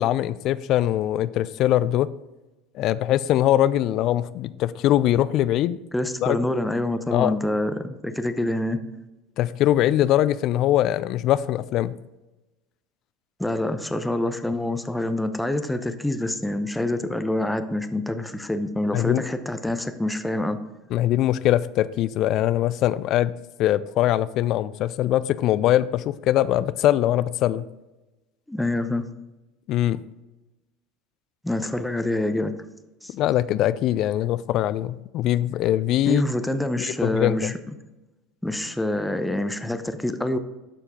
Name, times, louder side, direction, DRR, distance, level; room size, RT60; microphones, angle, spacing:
voice 1, 0.0-2.1 2.7-5.8 6.2-6.4 7.1-7.3 9.4-12.0 18.9-19.2 20.9-23.3 23.6-27.7 29.7-30.0 33.1-36.2 36.8-37.5, left 13 dB, 50° left, 16 dB, 0.3 m, -22 dB
voice 2, 5.9-8.8 13.4-20.6 28.5-29.0 31.4-32.5 33.0-33.1 36.1-37.5 38.4-40.4, left 1 dB, 5° left, 9 dB, 0.7 m, -26 dB
12.5 x 4.5 x 3.7 m, 1.1 s
figure-of-eight pair, 70°, 0 cm